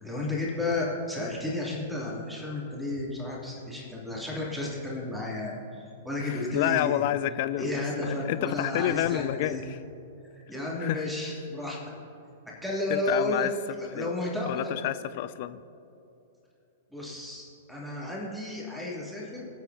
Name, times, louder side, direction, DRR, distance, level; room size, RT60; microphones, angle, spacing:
voice 1, 0.0-7.0 7.6-9.6 10.5-11.8 12.6-13.5 13.8-14.8 16.9-19.5, left 2 dB, ahead, -5 dB, 2.8 m, -32 dB
voice 2, 6.2-9.8 10.8-11.0 12.9-13.5 13.9-14.1 14.5-15.6, left 13 dB, 45° left, 14 dB, 0.4 m, -29 dB
21.0 x 8.2 x 2.8 m, 2.8 s
figure-of-eight pair, 105°, 0 cm